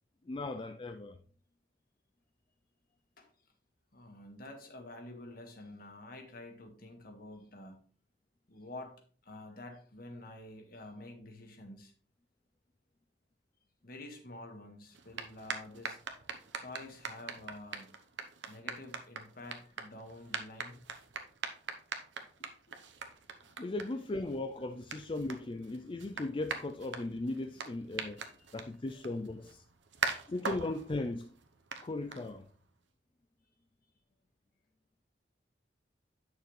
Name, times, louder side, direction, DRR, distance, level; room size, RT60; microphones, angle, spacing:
voice 1, 0.3-1.2 23.6-28.2 28.5-29.6 30.3-31.3 31.8-32.5, left 2 dB, 30° left, 0.4 m, -37 dB
voice 2, 3.9-7.8 8.5-8.9 9.2-11.9 13.8-16.0 16.5-17.9 18.5-20.8 22.4-22.8 23.0-23.1 28.2-28.5, left 2 dB, 55° left, 1.7 m, -49 dB
sound 1, 14.9-32.7, right 5 dB, 80° right, 1.0 m, -43 dB
9.7 x 6.6 x 3.2 m
head